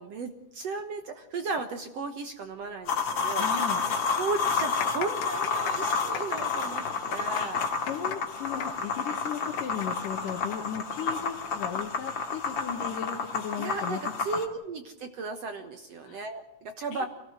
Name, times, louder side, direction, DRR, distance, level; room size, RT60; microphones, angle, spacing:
voice 1, 0.0-7.6 13.6-17.1, right 4 dB, 60° right, 7 dB, 1.9 m, -35 dB
sound 1, 2.9-14.5, left 5 dB, 40° left, 2.2 m, -30 dB
sound 2, 3.2-3.3 3.5-3.6 4.3-11.5 11.8-11.9 12.7-12.9, left 10 dB, 85° left, 3.4 m, -38 dB
voice 2, 3.3-3.8 6.7-7.0 7.3-7.5 7.9-14.0 16.0-16.2 16.9-17.1, left 8 dB, 70° left, 1 dB, 3.0 m, -36 dB
25.5 x 17.5 x 8.0 m, 0.89 s
omnidirectional pair, 4.1 m